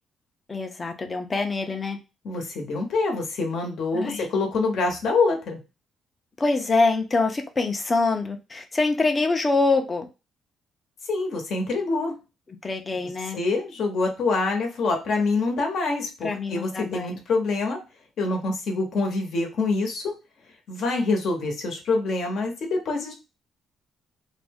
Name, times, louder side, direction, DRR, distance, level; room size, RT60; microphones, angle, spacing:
voice 1, 0.5-2.0 3.9-4.3 6.4-10.1 12.6-13.4 16.2-17.2, left 3 dB, 30° left, 5 dB, 0.5 m, -25 dB
voice 2, 2.2-5.6 11.1-12.1 13.3-17.8 18.2-20.1 20.7-23.1, left 3 dB, 65° left, 3 dB, 0.9 m, -25 dB
2.5 x 2.1 x 3.5 m, 0.28 s
cardioid pair, 90°, 0 cm